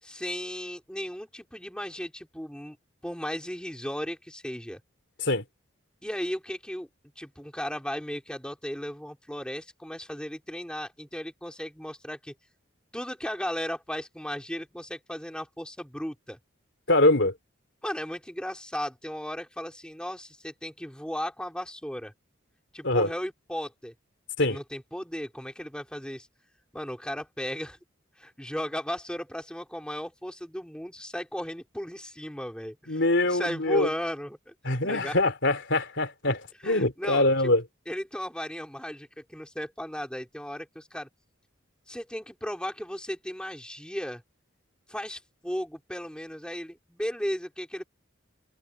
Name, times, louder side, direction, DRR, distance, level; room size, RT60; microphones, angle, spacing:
voice 1, 0.0-2.8 3.0-4.8 6.0-6.9 7.2-12.3 12.9-16.4 17.8-22.1 22.7-23.9 24.4-26.3 26.7-27.8 28.2-34.5 34.8-35.2 36.6-37.3 37.9-41.1 41.9-44.2 44.9-47.8, equal, 5° left, 4.3 m, -35 dB
voice 2, 16.9-17.3 22.8-23.1 24.4-24.6 32.9-33.9 34.6-37.6, left 2 dB, 65° left, 3.4 m, -24 dB
head